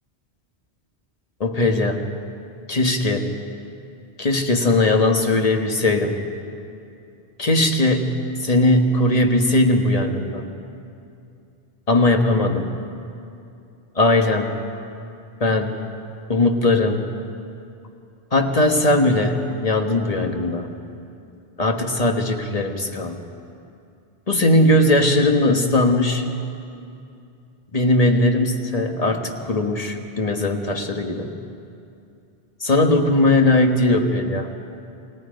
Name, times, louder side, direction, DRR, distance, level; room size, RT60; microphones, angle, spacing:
voice 1, 1.4-2.0 2.7-3.3 4.2-6.2 7.4-10.5 11.9-12.7 13.9-14.5 15.4-15.7 16.3-17.0 18.3-20.7 21.6-23.2 24.3-26.2 27.7-31.3 32.6-34.5, left 2 dB, 35° left, 4 dB, 1.5 m, -19 dB
28.5 x 21.0 x 5.2 m, 2.6 s
omnidirectional pair, 1.1 m